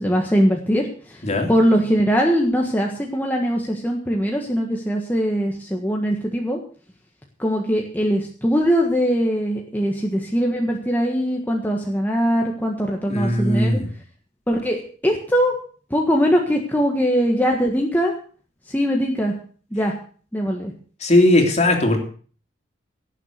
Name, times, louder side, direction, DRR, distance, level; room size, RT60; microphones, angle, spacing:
voice 1, 0.0-1.2 1.5-6.6 7.4-13.8 14.5-15.5 15.9-18.1 18.7-19.3 19.7-19.9 20.3-20.7, equal, 10° left, 0 dB, 1.6 m, -21 dB
voice 2, 13.1-13.9 21.0-22.0, left 1 dB, 40° left, 3 dB, 3.2 m, -18 dB
17.5 x 7.5 x 6.6 m, 0.43 s
head